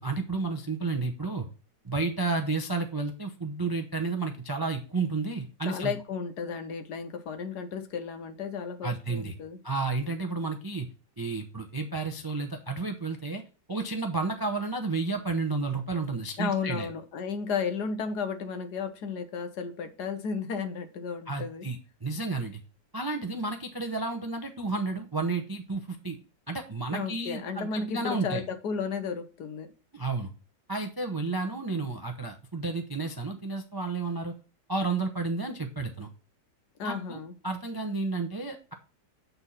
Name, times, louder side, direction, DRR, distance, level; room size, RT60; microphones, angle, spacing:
voice 1, 0.0-1.5 1.8-5.9 8.8-9.3 9.6-10.9 11.2-13.4 13.7-16.9 21.3-22.6 22.9-26.2 26.5-28.4 29.9-30.3 30.7-34.3 34.7-36.1 36.8-37.2 37.4-38.7, right 3 dB, 35° right, 5 dB, 0.3 m, -31 dB
voice 2, 5.7-9.6 16.4-21.7 26.9-29.7 36.8-37.3, left 5 dB, 70° left, 9 dB, 1.5 m, -33 dB
8.1 x 4.4 x 5.5 m, 0.35 s
omnidirectional pair, 1.9 m